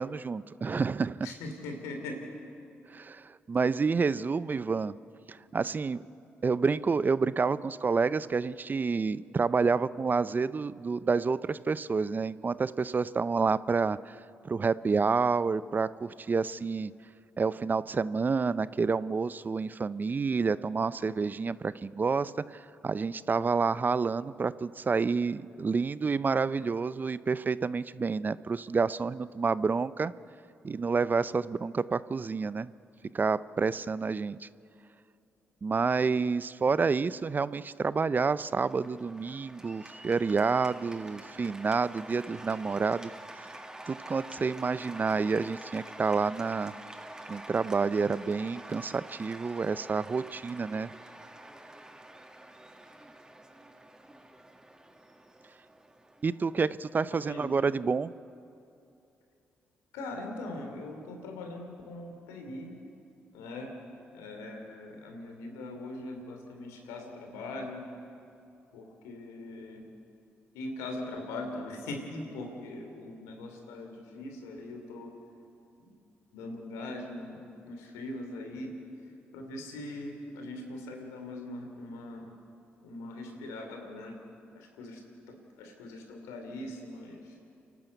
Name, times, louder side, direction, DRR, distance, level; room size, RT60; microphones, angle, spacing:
voice 1, 0.0-1.3 2.9-4.9 5.3-6.0 6.4-14.2 14.4-16.9 17.4-30.1 30.6-32.7 33.1-34.5 35.6-43.1 43.4-43.5 43.9-46.7 47.3-50.9 56.2-58.1, right 4 dB, 40° right, 17 dB, 0.6 m, -29 dB
voice 2, 1.2-2.2 57.1-57.7 59.9-62.7 63.3-63.7 64.1-67.9 68.7-69.8 70.5-75.1 75.8-76.0 76.3-78.7 79.3-82.3 82.8-84.2 84.5-85.0 85.3-87.4, left 2 dB, 90° left, 3 dB, 3.0 m, -41 dB
Cheering / Applause, 38.2-57.5, right 1 dB, 15° right, 1.8 m, -48 dB
28.0 x 12.0 x 8.3 m, 2.6 s
supercardioid pair, 55°, 5 cm